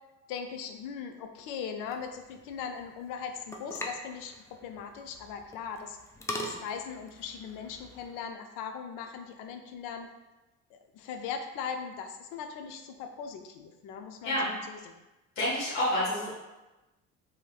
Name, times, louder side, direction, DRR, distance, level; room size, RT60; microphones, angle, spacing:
voice 1, 0.3-6.0 6.4-10.1 10.7-15.0, left 6 dB, 70° left, 6 dB, 0.5 m, -39 dB
sound 1, 1.8-8.2, left 1 dB, 10° left, 0.3 m, -43 dB
voice 2, 15.4-16.3, left 1 dB, 90° left, -8 dB, 0.9 m, -28 dB
3.0 x 2.7 x 2.3 m, 1.1 s
hypercardioid pair, 70°, 33 cm